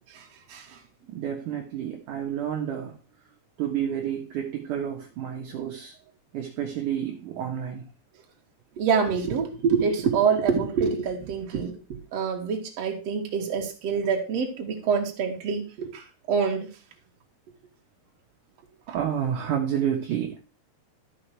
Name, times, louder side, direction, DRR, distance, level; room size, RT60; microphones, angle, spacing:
voice 1, 0.1-0.8 8.8-16.7 18.9-19.0, right 6 dB, 50° right, 2.3 m, -26 dB
voice 2, 1.1-3.0 3.6-5.9 6.3-7.8 18.9-20.4, right 9 dB, 65° right, 2.1 m, -30 dB
13.0 x 5.7 x 4.4 m
omnidirectional pair, 5.1 m